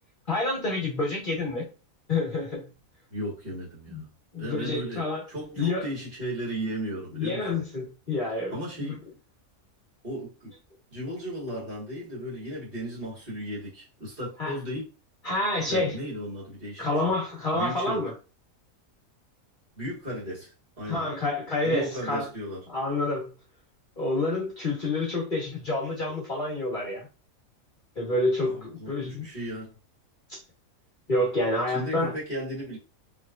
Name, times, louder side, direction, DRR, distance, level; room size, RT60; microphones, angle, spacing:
voice 1, 0.3-1.7 2.1-2.7 3.9-4.0 4.3-5.2 5.6-5.9 7.1-9.0 14.4-14.5 15.2-15.9 16.8-18.1 20.8-22.3 22.7-23.3 24.0-27.1 27.9-29.3 30.3-30.4 31.1-32.1, left 2 dB, 35° left, 1.4 m, -28 dB
voice 2, 3.1-4.1 4.4-7.6 8.5-9.0 10.0-10.5 10.9-14.9 15.6-16.9 17.5-18.0 19.8-21.1 21.6-22.6 28.4-29.7 31.7-32.8, equal, 40° right, 2.0 m, -35 dB
3.5 x 3.3 x 2.5 m
omnidirectional pair, 1.5 m